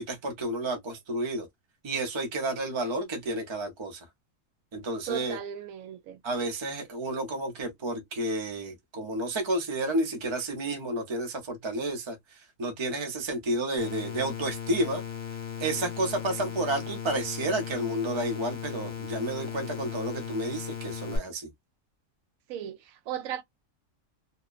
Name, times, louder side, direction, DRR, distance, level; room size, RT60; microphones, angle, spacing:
voice 1, 0.0-1.5 1.8-4.1 4.7-5.4 6.2-12.2 12.6-15.0 15.6-21.5, right 1 dB, 30° right, 0.5 m, -31 dB
voice 2, 5.1-6.2 22.5-23.4, right 9 dB, 80° right, 1.0 m, -36 dB
sound 1, 13.8-21.2, left 8 dB, 45° left, 0.8 m, -37 dB
2.8 x 2.0 x 2.3 m
omnidirectional pair, 1.4 m